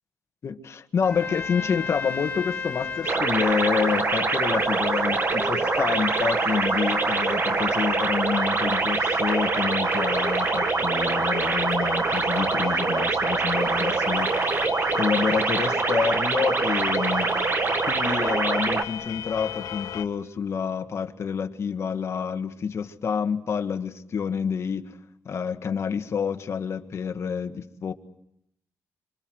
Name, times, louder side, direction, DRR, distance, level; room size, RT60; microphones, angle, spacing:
voice 1, 0.4-14.6 14.9-17.3 17.9-25.0 25.3-27.9, left 6 dB, 50° left, 1.7 m, -28 dB
sound 1, 1.0-20.0, left 9 dB, 90° left, 1.5 m, -39 dB
Trumpet, 1.0-8.7, left 5 dB, 25° left, 2.1 m, -35 dB
sound 2, 3.0-18.8, right 4 dB, 35° right, 1.5 m, -24 dB
26.5 x 26.0 x 7.8 m
cardioid pair, 125°, 6 cm